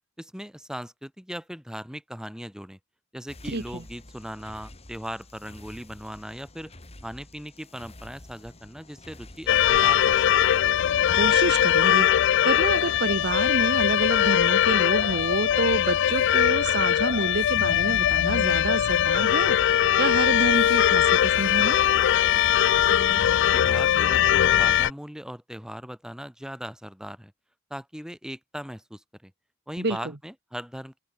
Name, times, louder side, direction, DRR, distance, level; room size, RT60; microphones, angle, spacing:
voice 1, 0.2-2.8 3.1-6.7 7.0-10.7 22.7-27.3 27.7-29.3 29.7-31.0, equal, 5° right, 4.5 m, -39 dB
sound 1, 3.3-11.7, left 1 dB, 30° left, 3.3 m, -48 dB
voice 2, 3.4-3.8 11.1-12.1 12.4-21.8 29.8-30.0, right 2 dB, 55° right, 1.7 m, -28 dB
sound 2, 9.5-24.9, left 10 dB, 60° left, 0.3 m, -21 dB
open air
head